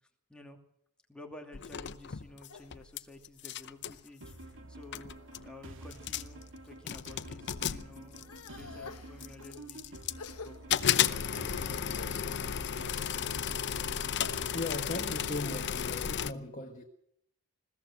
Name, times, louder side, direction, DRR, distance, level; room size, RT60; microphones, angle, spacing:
voice 1, 1.1-10.0 10.4-11.9, left 2 dB, 5° left, 2.5 m, -52 dB
sound 1, 1.5-3.0 3.2-4.0 4.6-4.7 4.9-5.5 5.9-6.4 6.9-8.6 9.2-10.3 10.7-16.3, left 9 dB, 50° left, 0.7 m, -33 dB
sound 2, 2.0-4.1 4.6-5.2 5.8-6.8 7.2-12.3, left 4 dB, 85° left, 1.4 m, -51 dB
sound 3, 4.2-15.6, right 2 dB, 60° right, 2.6 m, -49 dB
voice 2, 14.5-16.8, left 2 dB, 35° left, 1.7 m, -38 dB
21.0 x 16.0 x 7.7 m
head